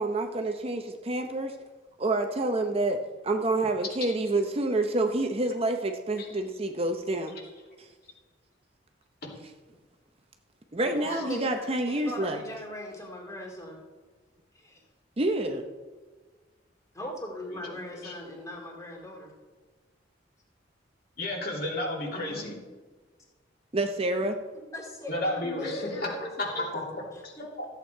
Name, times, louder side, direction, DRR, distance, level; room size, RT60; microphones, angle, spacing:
voice 1, 0.0-1.5 2.0-3.0 3.2-7.4 10.7-12.4 15.2-15.6 23.7-24.4, right 2 dB, 30° right, 5 dB, 0.7 m, -28 dB
voice 2, 11.0-13.8 14.5-14.8 16.9-19.3 22.1-22.4 24.7-26.7, equal, 15° left, -1 dB, 2.3 m, -39 dB
voice 3, 17.5-18.1 21.2-22.5 25.1-26.1 26.4-27.7, left 1 dB, 55° left, -3 dB, 3.0 m, -33 dB
14.0 x 8.2 x 4.5 m, 1.4 s
head